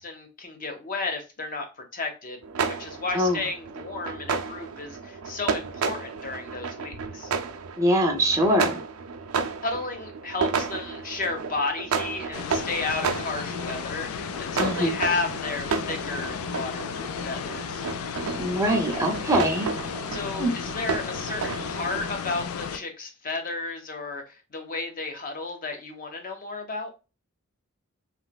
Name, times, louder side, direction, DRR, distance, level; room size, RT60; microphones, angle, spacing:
voice 1, 0.0-1.7 1.9-7.3 9.6-17.9 20.1-26.9, left 3 dB, 40° left, 0.7 m, -33 dB
sound 1, 2.4-22.1, right 5 dB, 90° right, 0.4 m, -32 dB
voice 2, 7.8-8.8 14.6-15.0 18.4-19.7 20.4-20.5, equal, 15° right, 0.5 m, -23 dB
sound 2, 12.3-22.8, left 7 dB, 85° left, 0.4 m, -34 dB
3.1 x 2.9 x 2.2 m
head